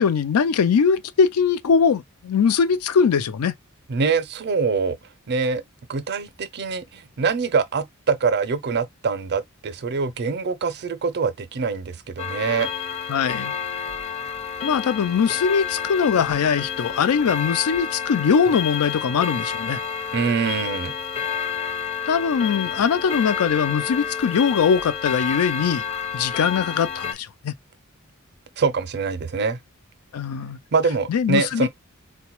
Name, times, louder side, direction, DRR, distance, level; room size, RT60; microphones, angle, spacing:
voice 1, 0.0-3.5 13.1-13.5 14.6-19.8 22.1-25.8 26.1-27.5 30.1-30.6 31.1-31.7, left 6 dB, 90° left, 0.4 m, -21 dB
voice 2, 3.9-5.0 5.3-5.6 5.9-12.7 20.1-20.9 28.6-29.6 30.7-31.7, right 5 dB, 50° right, 0.5 m, -24 dB
Clock, 12.2-27.1, left 7 dB, 30° left, 0.5 m, -29 dB
3.9 x 2.2 x 2.9 m
head